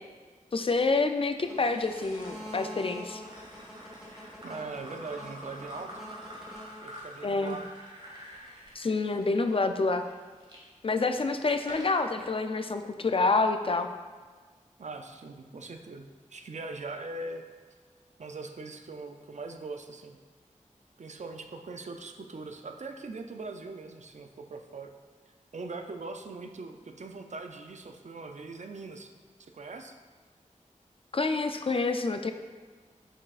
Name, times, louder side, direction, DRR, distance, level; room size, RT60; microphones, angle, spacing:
voice 1, 0.5-3.2 7.2-7.6 8.8-10.0 10.8-13.9 31.1-32.3, left 3 dB, 45° left, 7 dB, 0.4 m, -27 dB
sound 1, 1.3-7.3 8.1-8.6 12.2-12.3, equal, 5° right, 1.5 m, -45 dB
sound 2, 1.4-10.6 11.2-12.1, equal, 35° right, 1.7 m, -48 dB
voice 2, 4.4-6.0 6.8-7.7 14.8-17.5 18.2-20.2 21.0-24.9 25.5-29.1 29.5-29.9, right 3 dB, 60° right, 5 dB, 0.5 m, -41 dB
6.3 x 6.2 x 2.4 m, 1.5 s
wide cardioid pair, 80°, 13 cm